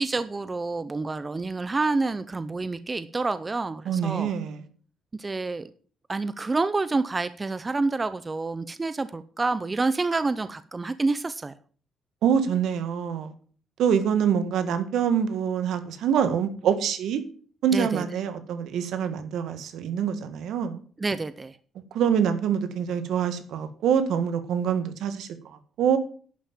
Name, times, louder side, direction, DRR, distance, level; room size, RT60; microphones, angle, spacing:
voice 1, 0.0-4.3 5.2-5.7 6.1-11.5 17.7-18.0 21.0-21.6, right 3 dB, 25° right, 13 dB, 0.6 m, -28 dB
voice 2, 3.8-4.6 12.2-13.3 13.8-17.2 17.6-20.8 21.9-26.0, right 8 dB, 80° right, 9 dB, 1.6 m, -25 dB
11.0 x 5.7 x 7.2 m, 0.43 s
cardioid pair, 110°, 0 cm